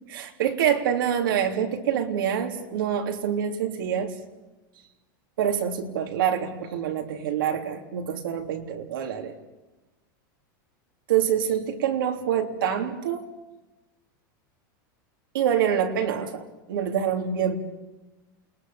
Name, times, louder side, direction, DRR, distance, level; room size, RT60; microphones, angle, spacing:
voice 1, 0.1-4.1 5.4-9.3 11.1-13.3 15.3-17.6, right 9 dB, 85° right, 3 dB, 3.3 m, -26 dB
28.5 x 20.5 x 7.1 m, 1.1 s
supercardioid pair, 135°, 11 cm